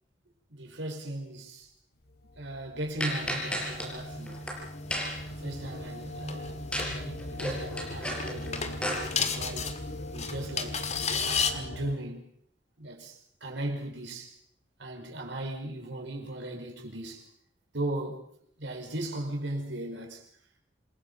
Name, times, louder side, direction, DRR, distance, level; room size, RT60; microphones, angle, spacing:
voice 1, 0.5-1.7 2.4-4.4 5.4-8.9 9.2-9.8 10.1-12.3 12.8-14.4 14.8-17.3 17.7-18.2 18.6-20.3, right 1 dB, 75° right, 5.1 m, -37 dB
sound 1, 2.1-11.9, left 2 dB, 60° left, 1.6 m, -42 dB
sound 2, 3.0-11.5, left 5 dB, 40° left, 1.8 m, -35 dB
sound 3, 3.0-3.9 4.3-4.5 4.9-5.3 6.7-6.9 7.2-9.0, equal, 5° left, 5.9 m, -32 dB
27.5 x 21.5 x 5.5 m
head